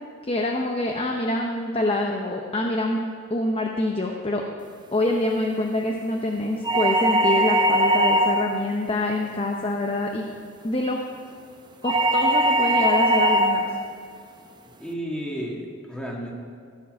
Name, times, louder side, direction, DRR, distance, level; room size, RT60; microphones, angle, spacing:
voice 1, 0.2-4.4 4.9-10.3 10.6-11.0 11.8-13.7, left 1 dB, 30° left, 1 dB, 0.7 m, -26 dB
sound 1, 6.6-8.6 11.8-13.7, right 1 dB, 20° right, 0.7 m, -20 dB
voice 2, 14.8-16.3, equal, 5° left, -2 dB, 1.7 m, -32 dB
15.0 x 7.1 x 6.1 m, 2.3 s
head